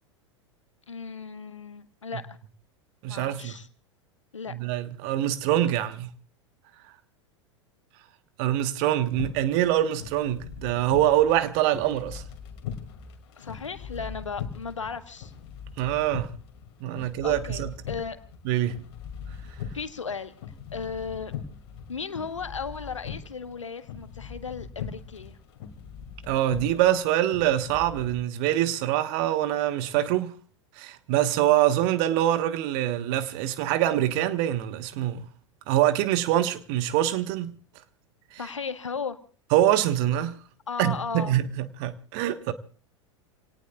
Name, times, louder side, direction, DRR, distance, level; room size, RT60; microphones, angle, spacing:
voice 1, 0.9-2.2 3.1-3.7 4.3-4.5 13.4-15.3 17.0-18.2 19.7-20.3 20.7-21.3 21.9-25.4 38.4-39.2 40.7-41.4, left 5 dB, 75° left, 1.2 m, -35 dB
voice 2, 3.0-3.6 4.5-6.1 8.4-12.2 15.8-16.3 16.8-17.7 18.4-18.8 26.3-30.4 30.8-35.2 35.7-37.6 38.3-38.4 39.5-40.4 40.8-42.5, right 12 dB, 45° right, 1.2 m, -24 dB
sound 1, 9.1-28.1, left 7 dB, 50° left, 2.4 m, -41 dB
28.5 x 18.0 x 2.4 m
figure-of-eight pair, 85°, 16 cm